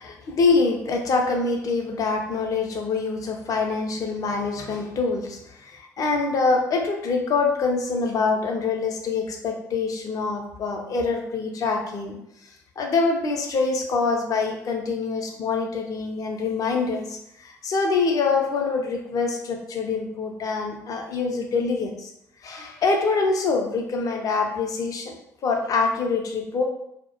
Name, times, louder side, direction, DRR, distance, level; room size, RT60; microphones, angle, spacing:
voice 1, 0.0-12.2 12.4-22.1 22.4-25.2 25.4-26.6, left 4 dB, 40° left, 2 dB, 0.5 m, -25 dB
2.2 x 2.0 x 2.9 m, 0.77 s
figure-of-eight pair, 50°, 9 cm